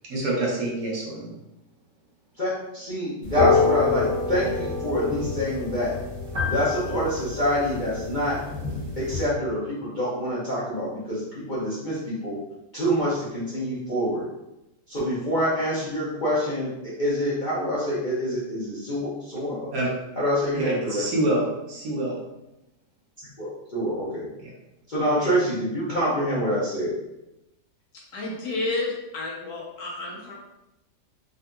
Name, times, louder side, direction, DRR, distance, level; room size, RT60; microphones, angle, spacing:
voice 1, 0.1-1.3 19.7-19.9 20.5-22.2 24.4-24.5, right 1 dB, 70° right, -3 dB, 1.3 m, -26 dB
voice 2, 2.4-5.9 6.4-8.4 9.0-12.4 12.7-14.3 14.9-19.7 20.2-21.0 23.4-24.3 24.9-26.9, equal, 45° left, -10 dB, 0.6 m, -26 dB
sound 1, 3.2-9.2, left 4 dB, 45° right, 1.4 m, -27 dB
voice 3, 28.1-30.4, left 2 dB, 70° left, -3 dB, 1.2 m, -30 dB
3.7 x 2.6 x 2.2 m, 0.92 s
omnidirectional pair, 1.8 m